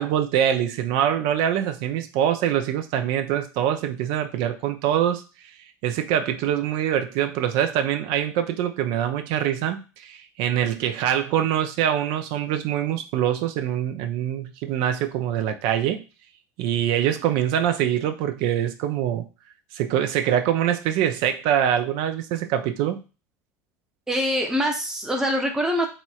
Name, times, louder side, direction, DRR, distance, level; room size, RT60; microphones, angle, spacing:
voice 1, 0.0-5.2 5.8-16.0 16.6-19.3 19.7-23.0, right 10 dB, 60° right, 8 dB, 0.4 m, -24 dB
voice 2, 24.1-25.9, equal, 5° right, 2 dB, 0.7 m, -24 dB
3.0 x 2.9 x 2.3 m, 0.31 s
hypercardioid pair, 75°, 9 cm